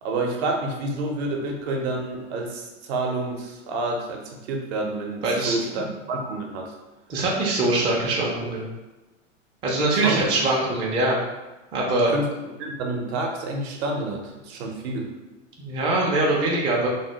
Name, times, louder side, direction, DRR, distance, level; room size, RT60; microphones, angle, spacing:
voice 1, 0.0-6.7 10.0-10.4 12.1-15.1, right 2 dB, 55° right, 1 dB, 0.7 m, -29 dB
voice 2, 5.2-5.9 7.1-8.7 9.6-11.2 11.7-12.1 15.6-16.9, right 2 dB, 15° right, -4 dB, 0.4 m, -23 dB
3.2 x 2.1 x 2.8 m, 1.1 s
hypercardioid pair, 115°, 38 cm